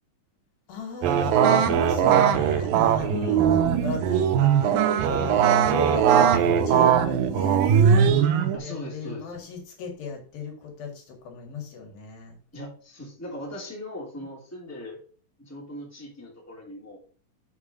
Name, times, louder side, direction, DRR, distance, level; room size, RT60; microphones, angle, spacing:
voice 1, 0.7-2.7 3.0-7.6 8.3-12.4, left 5 dB, 80° left, 1 dB, 3.9 m, -36 dB
sound 1, 1.0-8.6, right 8 dB, 80° right, 2.5 m, -20 dB
voice 2, 8.5-9.3 12.5-15.0 15.4-17.0, left 1 dB, 5° left, -3 dB, 2.4 m, -39 dB
7.2 x 4.7 x 6.2 m, 0.41 s
omnidirectional pair, 4.1 m